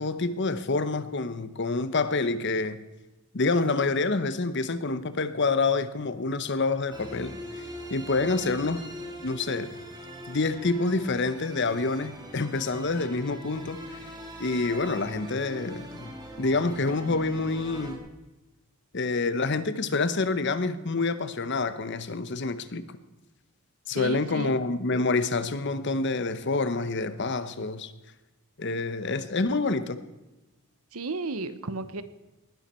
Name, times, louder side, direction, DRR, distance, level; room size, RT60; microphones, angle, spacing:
voice 1, 0.0-2.8 3.3-7.3 7.9-8.8 9.2-9.7 10.3-13.8 14.4-18.0 18.9-22.8 23.9-27.9 28.6-30.0, left 3 dB, 55° left, 0.9 m, -27 dB
sound 1, 6.9-18.0, equal, 20° right, 2.5 m, -42 dB
voice 2, 23.9-24.6 30.9-32.0, right 3 dB, 85° right, 1.0 m, -33 dB
19.5 x 11.5 x 4.4 m
head